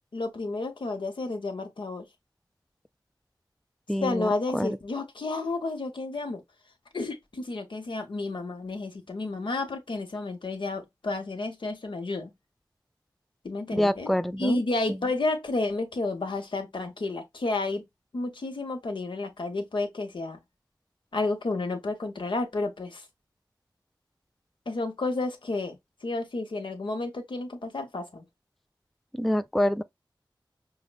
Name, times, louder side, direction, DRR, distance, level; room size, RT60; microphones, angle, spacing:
voice 1, 0.1-2.1 4.0-6.4 6.9-12.3 13.4-17.8 18.1-20.4 21.1-23.0 24.7-28.2, left 2 dB, 80° left, 1.0 m, -31 dB
voice 2, 3.9-4.8 13.7-14.6 29.2-29.8, left 1 dB, ahead, 0.3 m, -26 dB
5.6 x 2.1 x 2.3 m
wide cardioid pair, 55°, 8 cm